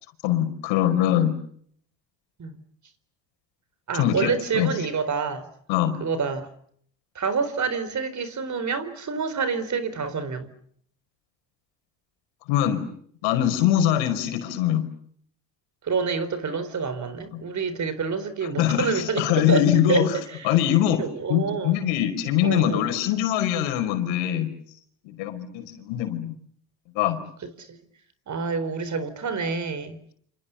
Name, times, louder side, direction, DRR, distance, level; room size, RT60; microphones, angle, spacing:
voice 1, 0.2-1.3 4.0-4.7 5.7-6.0 12.5-12.8 13.2-14.9 18.6-20.1 20.4-21.0 21.3-24.5 25.1-26.3 27.0-27.2, left 11 dB, 75° left, 5.1 m, -23 dB
voice 2, 3.9-5.5 6.0-6.5 7.1-10.5 15.8-20.5 21.0-21.8 22.4-22.9 27.6-27.8 28.3-30.0, right 5 dB, 40° right, 4.2 m, -27 dB
28.0 x 27.5 x 7.0 m
supercardioid pair, 85°, 46 cm